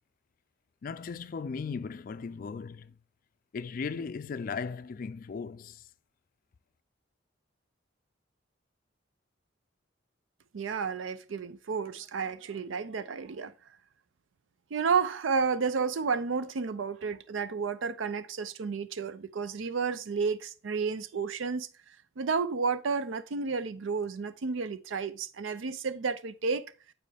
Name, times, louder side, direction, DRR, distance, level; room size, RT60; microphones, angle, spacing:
voice 1, 0.8-2.9 3.5-5.8, left 5 dB, 45° left, 0.3 m, -37 dB
voice 2, 10.5-13.5 14.7-21.7 22.2-26.7, right 5 dB, 85° right, 0.5 m, -31 dB
7.5 x 4.3 x 3.4 m
head